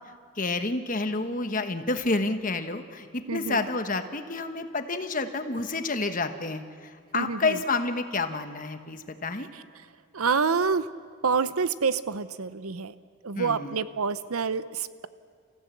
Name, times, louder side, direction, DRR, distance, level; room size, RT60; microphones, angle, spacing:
voice 1, 0.4-9.5 13.3-13.7, left 3 dB, 40° left, 8 dB, 1.2 m, -29 dB
voice 2, 3.3-3.7 7.1-7.6 9.5-9.6 10.1-10.9 11.2-12.9 13.2-15.1, right 5 dB, 85° right, 14 dB, 0.8 m, -27 dB
30.0 x 15.5 x 8.4 m, 2.1 s
head